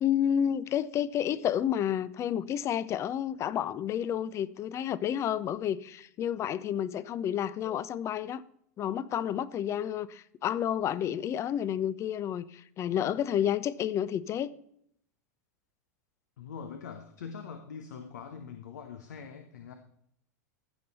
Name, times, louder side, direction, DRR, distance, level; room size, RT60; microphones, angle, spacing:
voice 1, 0.0-8.4 8.8-14.5, left 10 dB, 30° left, 0.5 m, -30 dB
voice 2, 16.4-19.7, left 6 dB, 80° left, 0.9 m, -43 dB
15.0 x 5.3 x 4.1 m
hypercardioid pair, 105°, 9 cm